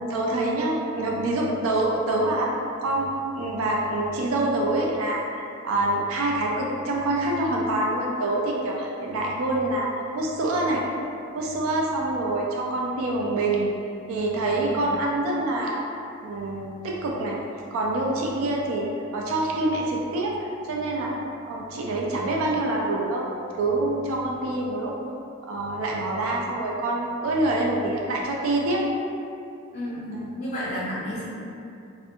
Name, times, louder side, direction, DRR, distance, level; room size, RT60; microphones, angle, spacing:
voice 1, 0.0-2.5 2.8-10.8 11.3-13.7 14.1-15.8 16.2-17.4 17.7-20.4 20.6-21.2 21.5-23.3 23.6-24.9 25.5-28.9 30.1-30.2, right 2 dB, 70° right, -2 dB, 0.3 m, -26 dB
voice 2, 29.7-31.2, equal, 45° left, -9 dB, 0.5 m, -32 dB
2.4 x 2.4 x 2.6 m, 2.7 s
head